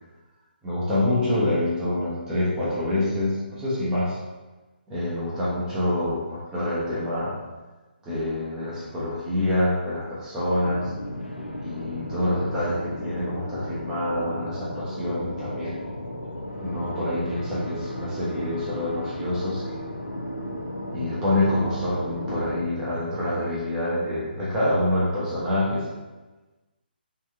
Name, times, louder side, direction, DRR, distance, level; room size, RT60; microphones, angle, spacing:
voice 1, 0.6-4.2 4.9-7.4 8.0-10.9 11.6-15.8 16.6-19.6 20.8-25.8, left 1 dB, 10° right, -9 dB, 1.1 m, -26 dB
sound 1, 10.6-22.7, equal, 80° left, 0.7 m, -34 dB
3.5 x 3.1 x 3.7 m, 1.2 s
figure-of-eight pair, 140°, 6 cm